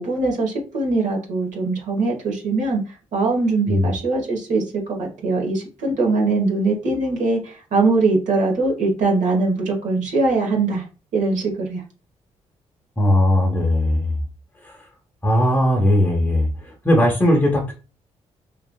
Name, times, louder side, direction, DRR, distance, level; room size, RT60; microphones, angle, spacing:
voice 1, 0.0-10.8 11.1-11.8, right 3 dB, 75° right, 0 dB, 1.1 m, -21 dB
voice 2, 13.0-14.2 14.6-14.8 15.2-17.7, left 1 dB, 15° left, -2 dB, 0.7 m, -18 dB
3.1 x 2.4 x 2.2 m, 0.33 s
cardioid pair, 85°, 13 cm